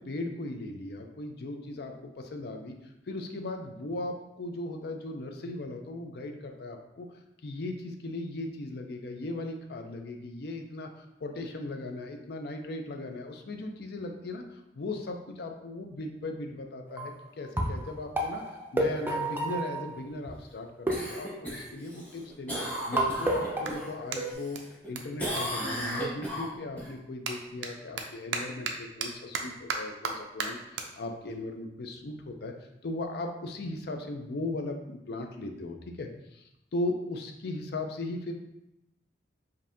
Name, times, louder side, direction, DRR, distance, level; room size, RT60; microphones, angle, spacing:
voice 1, 0.0-2.7 3.1-7.1 7.4-10.9 11.2-18.4 18.7-22.6 22.9-24.6 24.9-32.5 32.8-36.4 36.7-38.3, left 2 dB, 60° left, 4 dB, 0.5 m, -37 dB
sound 1, 16.9-17.2 17.6-20.3 20.9-22.0 23.0-24.3, right 2 dB, 10° right, 0.5 m, -31 dB
Cough, 20.9-23.9 24.3-24.9 25.2-26.9 31.3-31.4, equal, 10° left, 1.0 m, -35 dB
Clapping, 23.6-26.3 26.6-33.3, right 5 dB, 90° right, 0.5 m, -39 dB
5.2 x 2.7 x 2.7 m, 0.86 s
head